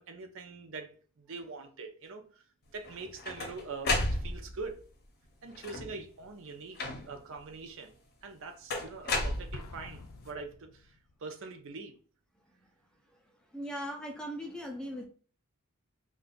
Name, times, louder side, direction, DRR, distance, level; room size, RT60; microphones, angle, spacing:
voice 1, 0.0-2.4 2.7-4.8 5.4-7.9 8.2-11.9, right 4 dB, 60° right, 0.6 m, -44 dB
sound 1, 2.8-4.7 5.5-6.1 6.8-7.3 8.7-10.0, left 2 dB, 45° left, 0.7 m, -33 dB
Explosion, 9.5-11.2, left 3 dB, 80° left, 0.4 m, -49 dB
voice 2, 13.5-15.1, equal, 5° left, 0.4 m, -38 dB
2.6 x 2.3 x 3.8 m
head